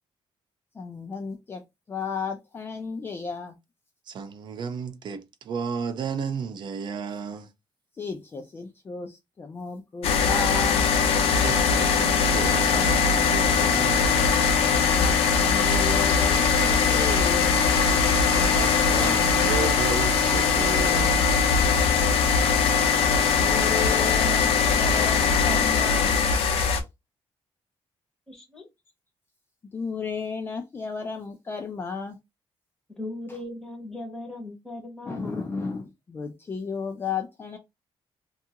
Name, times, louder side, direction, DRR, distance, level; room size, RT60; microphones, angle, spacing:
voice 1, 0.8-1.6 1.9-3.5 8.0-11.2 14.8-18.0 23.3-26.2 26.7-26.8 29.7-32.2 33.3-33.4 35.1-37.6, left 5 dB, 20° left, 0.3 m, -34 dB
voice 2, 4.1-7.5 11.4-14.3 18.3-21.3 22.7-22.9, right 6 dB, 50° right, 0.5 m, -33 dB
sound 1, 10.0-26.8, left 6 dB, 85° left, 0.6 m, -21 dB
voice 3, 28.3-28.6 33.0-35.5, left 2 dB, 5° left, 0.8 m, -38 dB
2.7 x 2.3 x 2.7 m
cardioid pair, 165°, 10 cm